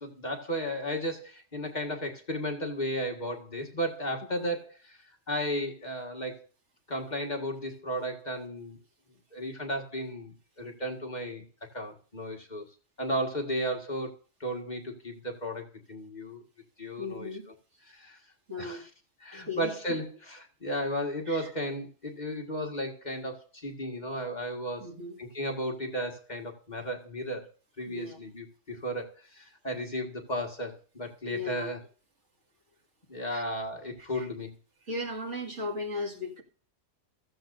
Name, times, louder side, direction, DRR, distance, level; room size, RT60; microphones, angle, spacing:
voice 1, 0.0-5.0 5.3-6.5 6.9-8.8 9.3-11.4 11.7-12.7 13.0-16.4 16.8-17.3 17.8-18.2 18.6-18.9 19.2-24.9 25.2-27.5 27.8-31.8 33.1-34.5, equal, 35° left, 1 dB, 1.9 m, -34 dB
voice 2, 17.0-17.5 18.5-18.8 19.3-20.0 21.3-21.5 24.8-25.2 27.9-28.2 31.2-31.7 33.3-33.4 34.1-34.3 34.9-36.4, left 2 dB, 70° right, -1 dB, 2.5 m, -37 dB
15.5 x 14.5 x 2.6 m, 0.41 s
omnidirectional pair, 1.3 m